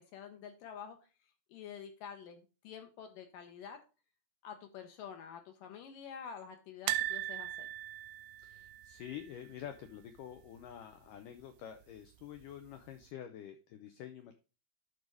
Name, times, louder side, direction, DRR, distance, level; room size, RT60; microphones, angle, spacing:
voice 1, 0.1-3.8 4.4-7.7, left 7 dB, 70° left, 6 dB, 2.2 m, -48 dB
sound 1, 6.9-9.9 10.2-10.4 10.6-10.7 12.0-12.5 13.0-13.1, right 14 dB, 85° right, 2.6 m, -39 dB
voice 2, 8.4-14.3, left 10 dB, 85° left, 7 dB, 1.9 m, -48 dB
11.0 x 4.1 x 4.7 m, 0.32 s
omnidirectional pair, 4.7 m